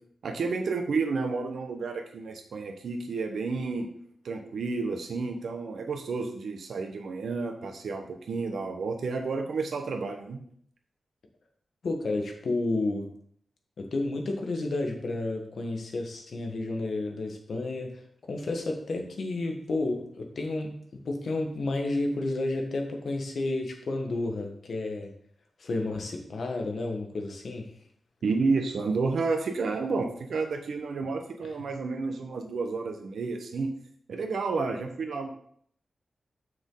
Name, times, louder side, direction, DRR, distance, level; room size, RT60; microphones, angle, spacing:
voice 1, 0.2-3.9 4.2-10.4 28.2-33.7 34.1-35.3, right 4 dB, 80° right, 5 dB, 1.0 m, -31 dB
voice 2, 11.8-13.1 13.8-25.1 25.6-27.7, left 2 dB, 60° left, 3 dB, 1.3 m, -31 dB
7.4 x 6.2 x 3.8 m, 0.64 s
wide cardioid pair, 165°, 0 cm